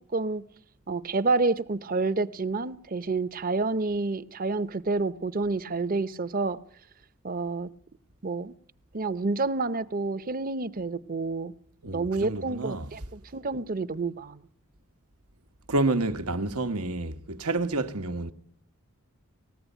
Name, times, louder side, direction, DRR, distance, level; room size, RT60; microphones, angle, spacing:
voice 1, 0.1-0.5 0.9-6.6 7.2-7.7 8.2-8.5 8.9-11.5 11.9-14.4, right 3 dB, 40° right, 0.7 m, -29 dB
voice 2, 11.8-12.9 15.7-18.3, right 2 dB, 90° right, 1.2 m, -29 dB
19.5 x 15.0 x 9.1 m
head